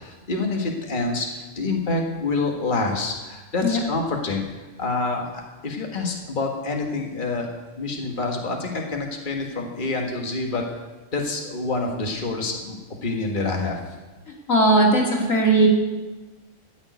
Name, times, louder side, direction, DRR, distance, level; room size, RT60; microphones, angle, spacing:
voice 1, 0.0-7.5 7.8-10.6 11.1-12.8 13.0-13.8, left 3 dB, 40° left, 1 dB, 1.8 m, -27 dB
voice 2, 14.5-15.7, right 2 dB, 90° left, -1 dB, 3.0 m, -18 dB
13.5 x 7.3 x 9.3 m, 1.2 s
omnidirectional pair, 1.3 m